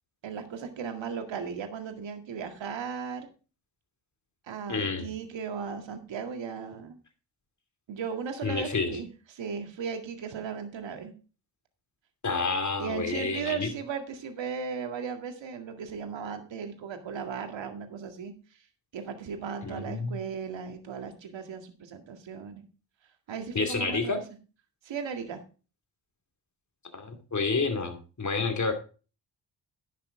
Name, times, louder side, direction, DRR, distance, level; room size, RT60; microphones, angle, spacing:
voice 1, 0.2-3.3 4.5-7.0 7.9-9.1 9.3-11.1 12.8-18.3 18.9-22.6 23.3-24.2 24.8-25.4, right 6 dB, 60° right, 7 dB, 2.0 m, -36 dB
voice 2, 4.7-5.1 8.4-9.0 12.2-13.7 19.6-20.2 23.5-24.2 26.9-28.7, left 4 dB, 35° left, 7 dB, 2.6 m, -29 dB
10.5 x 6.9 x 4.8 m, 0.35 s
hypercardioid pair, 40°, 50 cm